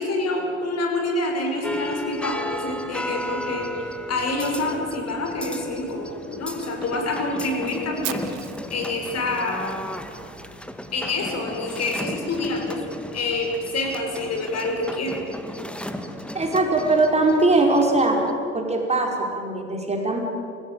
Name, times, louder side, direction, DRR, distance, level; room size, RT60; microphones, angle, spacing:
voice 1, 0.0-8.3 8.7-9.9 10.9-12.8 13.1-15.2, left 2 dB, 40° left, 3 dB, 6.0 m, -27 dB
sound 1, 1.6-18.3, left 1 dB, 5° left, 1.9 m, -35 dB
Fire, 8.0-10.1, right 16 dB, 55° right, 1.8 m, -37 dB
voice 2, 16.3-18.2 18.5-20.2, right 2 dB, 15° right, 1 dB, 4.8 m, -21 dB
28.5 x 17.0 x 9.0 m, 2.7 s
hypercardioid pair, 70°, 38 cm